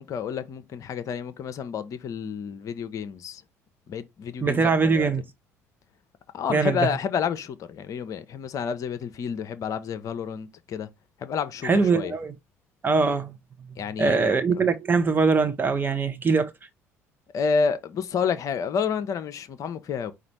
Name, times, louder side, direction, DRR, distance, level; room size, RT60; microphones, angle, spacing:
voice 1, 0.0-3.4 3.9-5.1 6.3-10.9 11.2-12.1 13.8-14.6 17.3-20.1, left 6 dB, 45° left, 0.6 m, -30 dB
voice 2, 4.4-5.2 6.5-6.8 11.6-12.3 12.8-13.3 14.0-16.5, right 4 dB, 25° right, 0.7 m, -22 dB
5.0 x 2.4 x 4.4 m
figure-of-eight pair, 55°, 8 cm